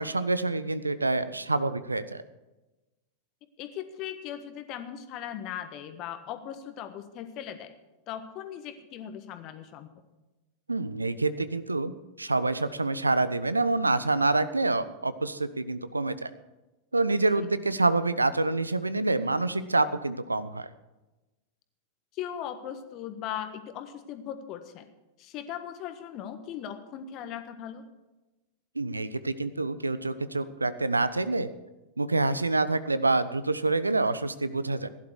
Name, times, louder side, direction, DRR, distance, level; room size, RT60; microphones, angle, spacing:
voice 1, 0.0-2.2 10.7-11.9 12.2-16.3 16.9-20.7 28.8-31.5 32.0-34.9, right 2 dB, 80° right, 15 dB, 0.6 m, -27 dB
voice 2, 3.6-7.7 8.1-9.9 17.4-17.5 22.1-24.9 25.2-27.8, left 10 dB, 40° left, 9 dB, 1.4 m, -38 dB
16.5 x 11.0 x 4.8 m, 1.1 s
figure-of-eight pair, 90°, 0 cm